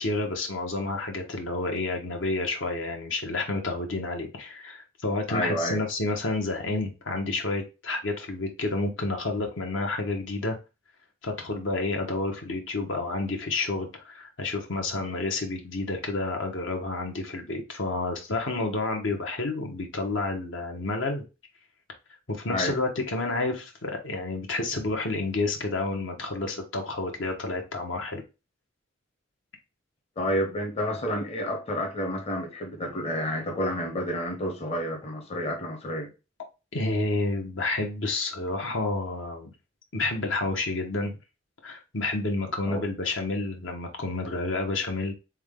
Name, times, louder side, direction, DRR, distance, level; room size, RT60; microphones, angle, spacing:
voice 1, 0.0-10.6 11.2-21.2 22.3-28.2 36.7-39.5 39.9-41.2 41.6-45.1, left 2 dB, 70° left, 1.1 m, -30 dB
voice 2, 5.3-5.8 22.5-22.7 30.2-36.1 42.7-42.8, equal, 30° left, 0.9 m, -30 dB
3.7 x 3.6 x 3.6 m
head